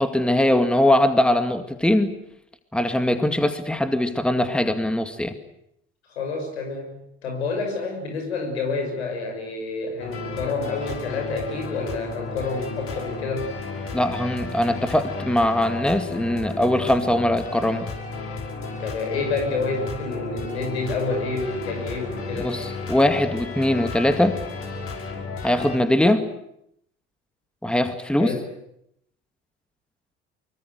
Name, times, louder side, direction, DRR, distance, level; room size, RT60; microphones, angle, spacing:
voice 1, 0.0-2.2 2.7-5.4 13.9-17.9 22.4-24.4 25.4-26.2 27.6-28.3, left 1 dB, 5° left, 9 dB, 2.2 m, -21 dB
voice 2, 6.1-13.5 18.8-22.6 28.2-28.5, left 3 dB, 80° left, 4 dB, 6.6 m, -28 dB
sound 1, 10.0-25.8, left 4 dB, 45° left, 5.8 m, -33 dB
24.5 x 23.5 x 8.1 m, 0.77 s
hypercardioid pair, 60°, 32 cm